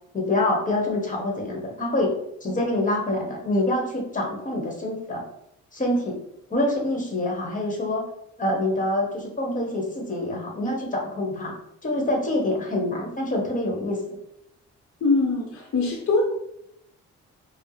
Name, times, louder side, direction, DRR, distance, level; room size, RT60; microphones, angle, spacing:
voice 1, 0.1-2.2 2.4-5.2 5.7-6.2 6.5-8.0 8.4-11.5 11.8-14.0, left 1 dB, 25° left, 0 dB, 1.2 m, -26 dB
voice 2, 15.0-16.2, left 3 dB, 45° left, 0 dB, 0.8 m, -22 dB
4.3 x 2.0 x 3.2 m, 0.79 s
cardioid pair, 90°, 30 cm